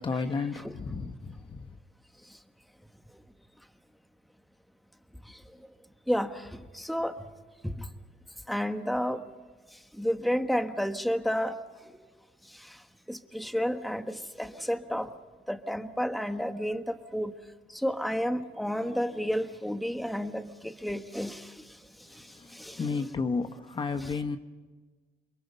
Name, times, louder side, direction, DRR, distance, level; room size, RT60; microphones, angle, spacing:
voice 1, 0.0-1.6 22.3-24.4, left 4 dB, 30° left, 1.1 m, -32 dB
voice 2, 6.1-7.2 7.6-7.8 8.5-9.2 10.0-11.6 12.5-12.8 13.1-15.1 15.5-17.3 17.7-21.7 22.1-22.9 24.0-24.1, equal, ahead, 1.3 m, -31 dB
29.0 x 22.5 x 5.5 m
cardioid pair, 110°, 17 cm